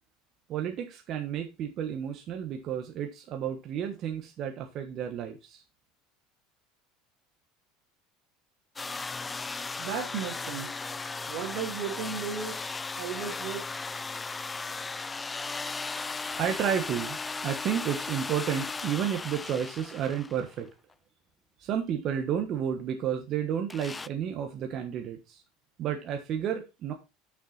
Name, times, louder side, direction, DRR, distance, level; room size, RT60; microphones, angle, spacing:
voice 1, 0.5-5.6 16.4-20.7 21.6-25.4 25.8-26.9, right 9 dB, 45° right, 1.3 m, -31 dB
sound 1, 8.8-20.6 23.7-24.1, left 4 dB, 15° left, 0.3 m, -36 dB
voice 2, 9.8-12.6 13.0-13.9, right 7 dB, 65° right, 2.6 m, -36 dB
6.6 x 6.3 x 4.3 m
supercardioid pair, 125°, 0 cm